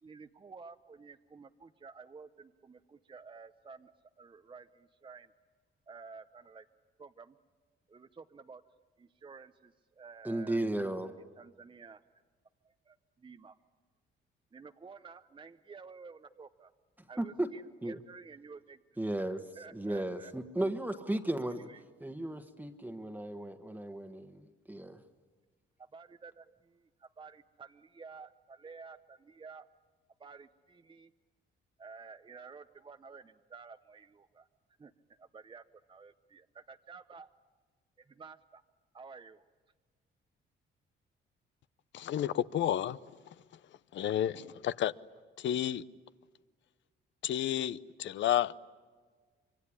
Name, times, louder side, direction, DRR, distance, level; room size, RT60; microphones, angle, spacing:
voice 1, 0.0-5.3 5.9-6.6 7.0-7.4 7.9-8.6 9.0-10.6 11.4-12.0 12.6-13.6 14.5-16.7 17.1-18.8 19.6-20.3 20.9-21.3 21.7-21.8 25.9-29.7 30.2-31.1 31.8-34.5 34.8-34.9 35.2-37.3 38.0-38.6 38.9-39.5, right 5 dB, 25° right, 0.8 m, -52 dB
voice 2, 10.2-11.2 17.2-17.5 17.8-18.0 19.0-19.4 19.7-21.7 22.0-25.0, right 1 dB, 10° right, 1.4 m, -35 dB
voice 3, 41.9-43.0 43.9-44.9 45.4-45.8 47.2-48.5, left 11 dB, 70° left, 0.7 m, -31 dB
25.5 x 23.5 x 9.8 m
cardioid pair, 90°, 20 cm